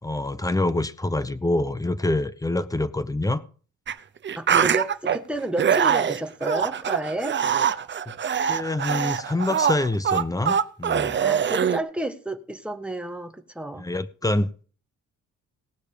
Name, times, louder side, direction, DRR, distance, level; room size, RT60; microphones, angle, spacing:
voice 1, 0.0-3.4 8.1-8.2 8.5-11.2 13.8-14.5, left 2 dB, 10° left, 14 dB, 1.0 m, -26 dB
sound 1, 3.9-4.0 4.2-5.2 5.6-11.8, right 8 dB, 40° right, 0.8 m, -23 dB
voice 2, 4.3-7.4 11.2-13.8, right 1 dB, 5° right, 6 dB, 1.6 m, -31 dB
18.5 x 6.4 x 5.1 m, 0.42 s
cardioid pair, 90°, 30 cm